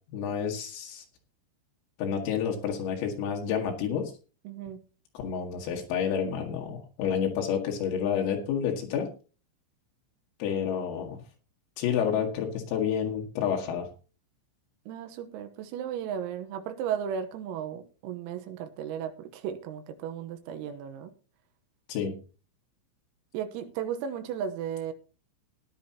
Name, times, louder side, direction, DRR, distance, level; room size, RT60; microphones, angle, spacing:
voice 1, 0.1-1.0 2.0-4.1 5.2-9.1 10.4-11.2 11.8-13.9 21.9-22.1, left 8 dB, 80° left, 4.4 m, -29 dB
voice 2, 4.5-4.8 14.9-21.1 23.3-24.9, right 8 dB, 90° right, 3.8 m, -35 dB
18.0 x 10.5 x 2.9 m
omnidirectional pair, 6.0 m